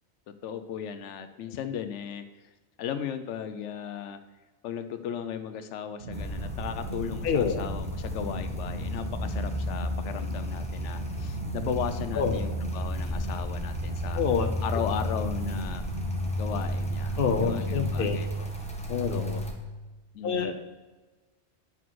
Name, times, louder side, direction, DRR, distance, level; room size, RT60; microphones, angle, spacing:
voice 1, 0.3-2.2 2.8-4.2 4.6-14.2 14.6-15.8 16.4-18.5 19.1-19.4 20.1-20.5, left 8 dB, 90° left, 10 dB, 0.9 m, -36 dB
sound 1, 6.0-18.1, right 1 dB, 75° right, 1.7 m, -37 dB
sound 2, 6.1-19.5, equal, 5° left, 1.0 m, -33 dB
voice 2, 7.2-7.7 12.1-12.4 14.2-14.5 17.2-18.2 18.9-19.4 20.2-20.6, left 6 dB, 55° left, 6 dB, 1.0 m, -27 dB
9.3 x 6.1 x 4.6 m, 1.2 s
omnidirectional pair, 1.2 m